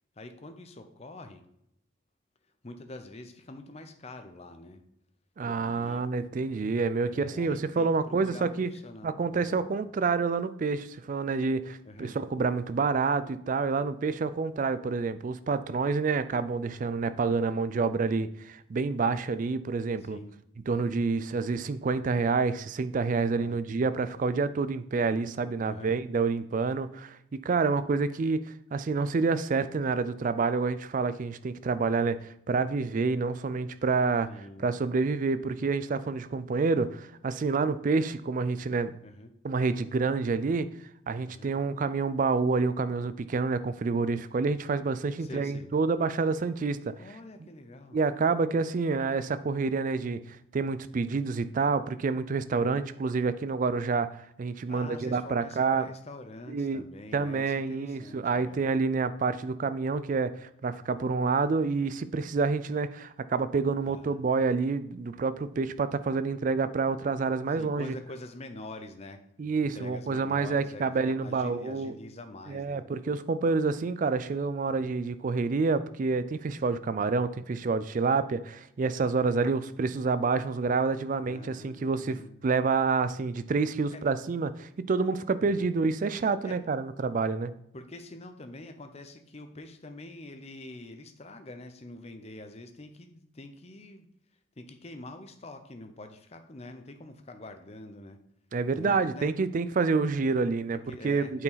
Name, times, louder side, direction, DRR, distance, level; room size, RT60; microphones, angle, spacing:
voice 1, 0.2-1.5 2.6-4.8 5.4-6.1 7.1-9.6 11.8-12.2 17.3-17.6 20.0-20.4 23.3-23.6 25.6-26.0 34.3-34.7 39.0-39.3 41.3-41.6 45.2-45.7 47.0-48.0 52.6-52.9 54.7-58.6 63.9-64.2 67.5-69.2 69.6-72.9 81.2-82.5 83.9-84.0 85.4-85.7 86.4-86.6 87.7-94.1 94.6-98.2 98.7-99.3 100.7-101.3, left 2 dB, 30° left, 7 dB, 0.6 m, -45 dB
voice 2, 5.4-8.7 9.0-20.2 20.7-34.3 34.6-38.9 39.4-40.7 41.1-46.9 47.9-50.2 50.5-54.1 54.4-55.8 56.5-56.8 57.1-67.9 69.4-71.9 72.5-87.5 98.5-100.8 101.0-101.4, right 4 dB, 40° right, 13 dB, 0.3 m, -28 dB
8.6 x 4.6 x 4.0 m, 0.77 s
head